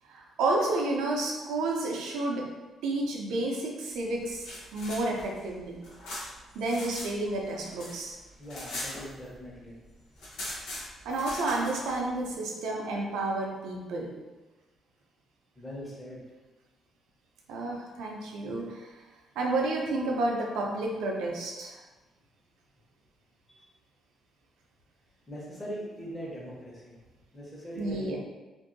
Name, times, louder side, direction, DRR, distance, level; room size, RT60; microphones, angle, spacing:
voice 1, 0.1-2.5 2.8-5.8 6.5-8.2 11.1-14.1 17.5-18.9 19.4-21.8 27.7-28.2, right 2 dB, 90° right, 0 dB, 0.5 m, -30 dB
sound 1, 4.2-7.1 7.4-9.6 9.8-9.9 10.1-12.0, left 1 dB, 85° left, 0.8 m, -40 dB
voice 2, 8.4-9.7 15.6-16.2 23.6-23.7 25.3-27.0 27.3-28.2, equal, 15° left, -6 dB, 1.0 m, -41 dB
2.6 x 2.6 x 2.6 m, 1.2 s
cardioid pair, 90°, 0 cm